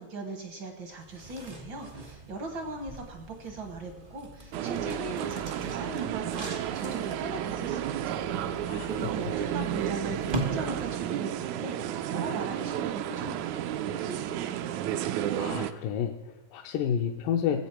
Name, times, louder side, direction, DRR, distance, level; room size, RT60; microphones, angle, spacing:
voice 1, 0.0-14.8, right 2 dB, 65° right, 4 dB, 1.1 m, -40 dB
sound 1, 0.9-11.3, right 1 dB, 50° right, 0.6 m, -41 dB
sound 2, 4.5-15.7, right 10 dB, 80° right, 1.7 m, -32 dB
voice 2, 15.4-17.7, left 8 dB, 85° left, 2 dB, 2.3 m, -30 dB
20.0 x 8.1 x 4.4 m, 1.1 s
omnidirectional pair, 3.9 m